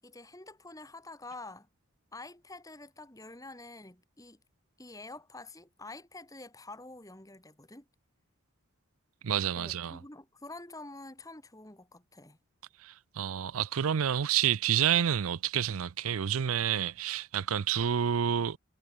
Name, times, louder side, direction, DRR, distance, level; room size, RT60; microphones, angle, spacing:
voice 1, 0.0-1.7 2.1-4.4 4.8-7.9 9.6-12.4, left 2 dB, 15° left, 2.2 m, -47 dB
voice 2, 9.2-10.0 12.8-18.6, right 9 dB, 75° right, 0.5 m, -29 dB
head